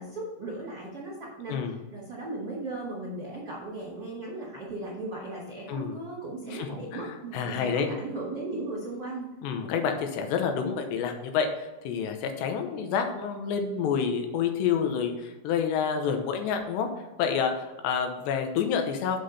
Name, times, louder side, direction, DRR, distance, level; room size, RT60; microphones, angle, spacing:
voice 1, 0.0-1.5 1.9-9.3, right 2 dB, 40° right, -4 dB, 1.6 m, -37 dB
voice 2, 1.5-1.8 5.7-6.0 6.5-7.9 9.4-16.9 17.2-19.2, left 7 dB, 85° left, 5 dB, 3.1 m, -28 dB
7.7 x 6.5 x 4.1 m, 1.1 s
omnidirectional pair, 4.9 m